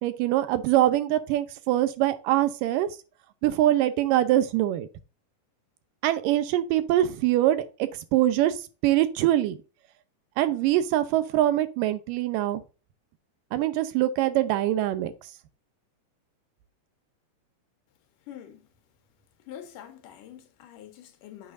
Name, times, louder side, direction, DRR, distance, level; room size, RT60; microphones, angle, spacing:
voice 1, 0.0-2.9 3.4-4.9 6.0-8.6 8.8-9.6 10.4-12.6 13.5-15.1, right 13 dB, 90° right, 2.4 m, -23 dB
voice 2, 18.3-18.7 19.5-21.5, left 10 dB, 80° left, 2.7 m, -45 dB
8.5 x 5.8 x 2.5 m
omnidirectional pair, 3.7 m